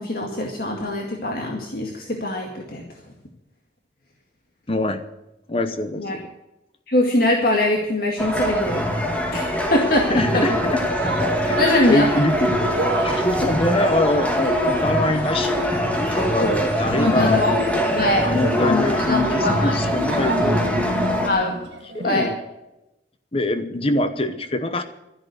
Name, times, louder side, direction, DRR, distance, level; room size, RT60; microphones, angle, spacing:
voice 1, 0.0-2.8 6.0-6.2 6.9-8.8 9.3-10.1 11.6-12.1 16.4-16.5 17.0-17.6 17.9-19.8 21.2-21.6 22.0-22.3, left 1 dB, 55° left, 1 dB, 2.1 m, -22 dB
voice 2, 4.7-5.0 5.5-6.3 10.1-10.8 11.5-12.5 13.0-17.5 18.2-20.6 21.9-22.4 23.3-24.8, left 1 dB, 30° left, 10 dB, 0.9 m, -24 dB
sound 1, 8.2-21.3, equal, 10° left, 2.0 m, -23 dB
sound 2, 10.2-22.3, right 2 dB, 75° right, 1.8 m, -33 dB
13.0 x 11.0 x 8.1 m, 0.93 s
head